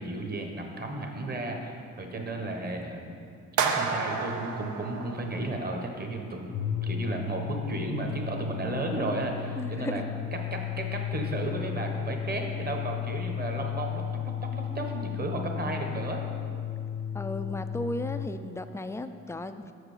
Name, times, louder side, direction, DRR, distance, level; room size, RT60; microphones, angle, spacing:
voice 1, 0.0-3.2 3.6-6.5 6.8-10.0 10.5-16.2, right 2 dB, 30° right, 3 dB, 1.2 m, -34 dB
sound 1, 3.6-5.8, right 5 dB, 75° right, 0.7 m, -31 dB
sound 2, 6.4-18.3, left 9 dB, 70° left, 0.7 m, -34 dB
voice 2, 9.6-10.0 17.1-19.7, left 2 dB, 10° left, 9 dB, 0.3 m, -35 dB
7.0 x 4.9 x 6.6 m, 2.3 s
cardioid pair, 90°, 30 cm